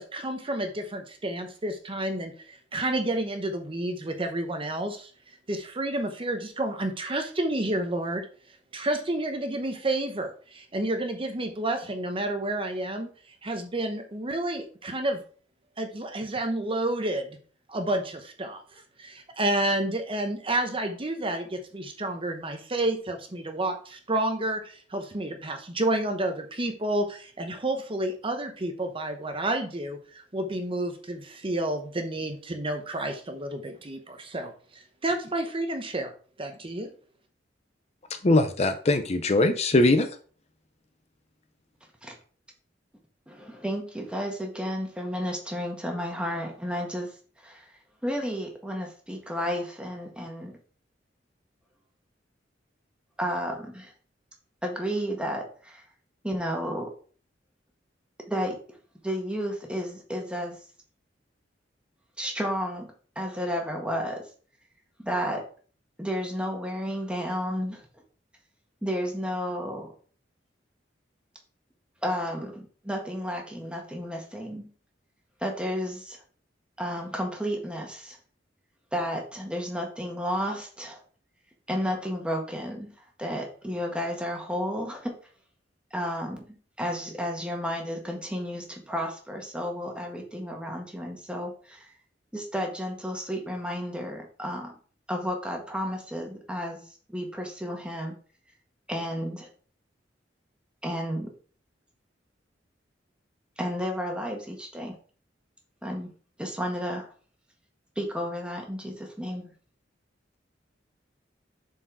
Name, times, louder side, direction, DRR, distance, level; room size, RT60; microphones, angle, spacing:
voice 1, 0.0-5.1 5.5-8.3 8.7-13.1 13.4-15.2 15.8-17.4 17.7-36.1 36.4-36.9, right 1 dB, 30° right, 6 dB, 0.9 m, -30 dB
voice 2, 38.2-40.1, left 2 dB, 35° left, 8 dB, 0.6 m, -21 dB
voice 3, 43.3-47.1 47.4-47.6 48.0-50.6 53.2-53.9 54.6-55.8 56.2-56.9 58.3-58.6 59.0-60.6 62.2-64.2 65.0-65.4 66.0-67.8 68.8-69.9 72.0-74.7 75.4-76.2 76.8-78.2 78.9-81.0 81.7-82.9 83.2-85.2 85.9-86.4 86.8-91.9 92.3-94.7 95.1-96.8 97.1-98.1 98.9-99.5 100.8-101.3 103.6-104.9 105.8-106.1 106.4-107.1 108.0-109.5, equal, 5° right, 1 dB, 1.6 m, -32 dB
7.3 x 4.6 x 4.7 m, 0.42 s
head